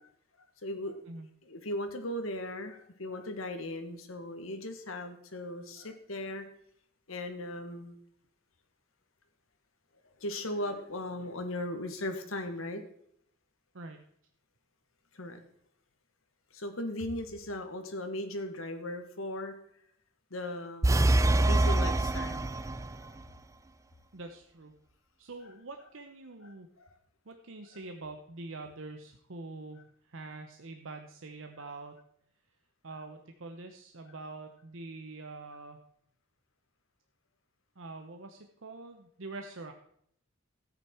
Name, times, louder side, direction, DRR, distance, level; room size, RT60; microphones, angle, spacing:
voice 1, 0.6-1.0 1.4-6.4 7.1-7.9 10.2-12.8 15.1-15.4 16.5-19.5 20.3-20.9 21.5-22.5 23.0-23.1 26.4-26.9, left 1 dB, 85° left, 6 dB, 1.7 m, -37 dB
voice 2, 13.7-14.1 24.1-24.8 25.2-26.7 27.3-32.0 32.8-35.8 37.8-39.7, right 3 dB, 65° right, 5 dB, 0.9 m, -45 dB
sound 1, 20.8-23.1, right 1 dB, 15° right, 0.4 m, -25 dB
13.5 x 9.1 x 4.5 m, 0.71 s
head